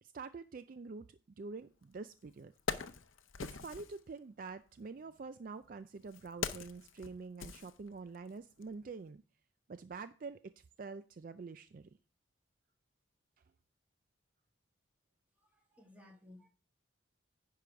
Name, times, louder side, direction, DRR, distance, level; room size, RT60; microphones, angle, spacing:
voice 1, 0.0-2.5 3.4-9.2 9.7-11.9, right 4 dB, 45° right, 0.3 m, -47 dB
Wood, 1.8-1.9 2.4-4.0 5.0-8.3 8.6-8.8, left 5 dB, 85° left, 0.7 m, -43 dB
voice 2, 15.4-16.5, left 1 dB, 10° right, 2.0 m, -58 dB
10.0 x 4.8 x 5.7 m
head